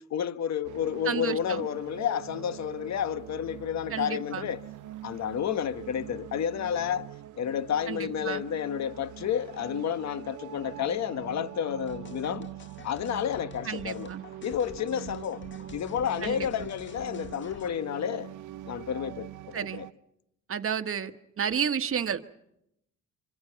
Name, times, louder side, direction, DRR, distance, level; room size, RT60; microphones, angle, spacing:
voice 1, 0.0-4.6 5.0-7.1 7.4-12.5 12.8-14.1 14.4-15.5 15.7-18.3 18.7-19.8, left 9 dB, 65° left, 1.4 m, -31 dB
sound 1, 0.6-19.9, right 14 dB, 75° right, 0.9 m, -44 dB
voice 2, 1.0-1.7 3.9-4.5 7.9-8.4 13.6-14.2 16.2-16.5 19.5-19.8 20.5-21.1 21.4-22.2, right 7 dB, 45° right, 1.5 m, -31 dB
sound 2, 11.9-17.7, left 6 dB, 40° left, 1.9 m, -49 dB
26.5 x 26.0 x 5.9 m
cardioid pair, 90°, 30 cm